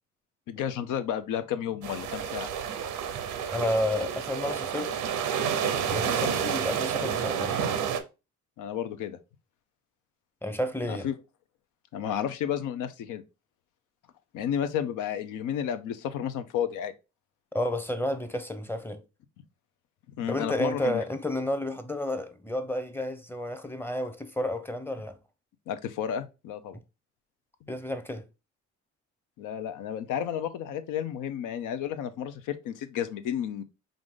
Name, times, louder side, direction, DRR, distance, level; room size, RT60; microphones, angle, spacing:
voice 1, 0.5-2.5 8.6-9.2 10.9-11.1 11.9-13.2 14.3-16.9 20.2-21.0 25.7-26.8 27.6-27.7 29.4-33.6, left 9 dB, 85° left, 0.6 m, -32 dB
sound 1, 1.8-8.0, right 7 dB, 90° right, 0.7 m, -30 dB
voice 2, 3.5-4.9 5.9-7.6 10.4-11.1 17.5-19.0 20.3-25.2 27.7-28.3, left 1 dB, 5° left, 0.6 m, -31 dB
4.9 x 2.6 x 3.6 m
cardioid pair, 90°, 30 cm